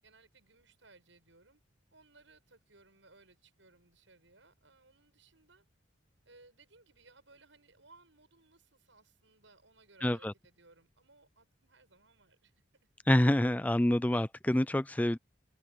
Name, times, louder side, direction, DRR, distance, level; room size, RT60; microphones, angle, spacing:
voice 1, 0.0-1.6 1.9-5.6 6.3-12.6, right 3 dB, 75° right, 7.4 m, -62 dB
voice 2, 10.0-10.3 13.1-15.2, left 1 dB, 10° left, 0.3 m, -27 dB
open air
head